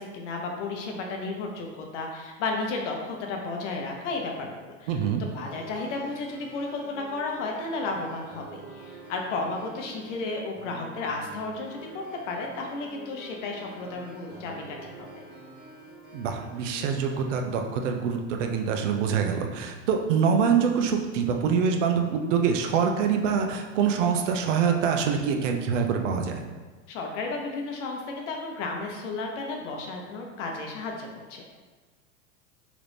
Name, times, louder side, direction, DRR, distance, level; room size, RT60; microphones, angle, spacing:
voice 1, 0.0-4.9 5.2-15.1 26.9-31.4, left 3 dB, 70° left, 1 dB, 0.8 m, -33 dB
voice 2, 4.9-5.2 16.1-26.4, right 6 dB, 75° right, 3 dB, 0.6 m, -25 dB
sound 1, 5.3-17.3, right 1 dB, 25° right, 1.2 m, -47 dB
3.0 x 2.5 x 3.3 m, 1.3 s
hypercardioid pair, 115°, 37 cm